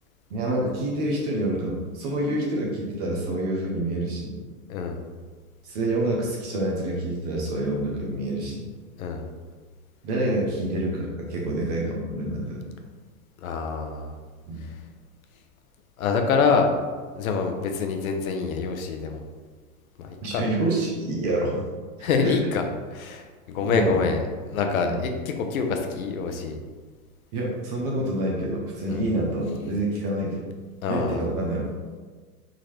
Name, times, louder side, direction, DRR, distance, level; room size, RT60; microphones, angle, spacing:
voice 1, 0.3-4.4 5.6-8.7 10.0-12.6 14.5-14.7 20.2-21.6 22.1-22.4 23.6-24.0 24.8-25.0 27.3-30.5 30.9-31.6, right 1 dB, 25° right, -2 dB, 0.6 m, -27 dB
voice 2, 13.4-14.1 16.0-16.7 17.1-19.2 20.0-20.4 22.0-23.3 23.5-24.2 24.5-25.1 25.4-26.6 28.9-29.0 30.8-31.3, left 5 dB, 65° left, 4 dB, 0.8 m, -25 dB
4.3 x 3.8 x 3.2 m, 1.4 s
hypercardioid pair, 160°, 45 cm